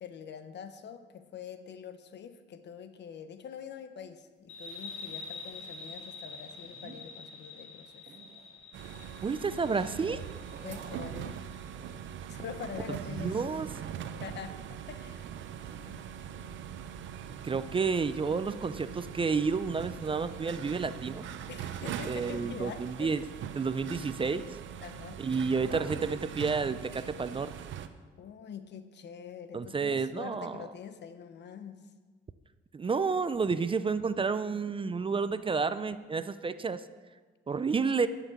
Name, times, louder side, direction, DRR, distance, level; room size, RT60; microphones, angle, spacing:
voice 1, 0.0-8.2 10.6-11.5 12.3-13.6 14.2-15.3 15.9-16.6 21.5-23.3 24.8-25.2 28.2-31.9, left 7 dB, 60° left, 10 dB, 1.0 m, -45 dB
sound 1, 4.5-11.7, left 4 dB, 85° left, 1.7 m, -46 dB
sound 2, 6.4-7.1 8.1-9.5 9.8-11.4 11.7-12.1 12.9-14.0 15.6-15.9, right 4 dB, 50° right, 1.7 m, -53 dB
sound 3, 8.7-27.9, right 9 dB, 75° right, 0.7 m, -41 dB
voice 2, 9.2-10.2 13.1-13.7 17.4-21.2 22.1-23.2 23.5-24.5 25.2-27.5 29.5-30.6 32.7-36.8 37.5-38.1, right 5 dB, 25° right, 13 dB, 0.5 m, -30 dB
11.5 x 5.9 x 7.2 m, 1.4 s
cardioid pair, 90°, 20 cm